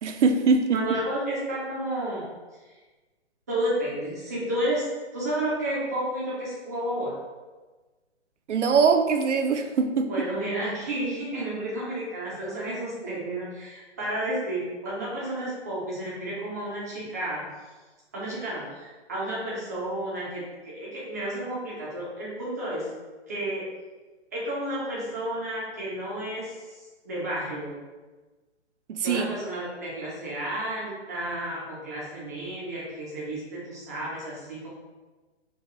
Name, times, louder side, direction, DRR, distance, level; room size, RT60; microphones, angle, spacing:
voice 1, 0.0-1.0 8.5-10.3 28.9-29.3, right 5 dB, 85° right, 6 dB, 0.6 m, -22 dB
voice 2, 0.7-2.2 3.5-7.2 10.1-17.4 18.1-22.9 23.3-23.6 24.3-26.5 27.0-27.7 29.0-34.7, right 1 dB, 15° right, -6 dB, 0.4 m, -31 dB
4.5 x 2.2 x 3.0 m, 1.3 s
hypercardioid pair, 150°, 34 cm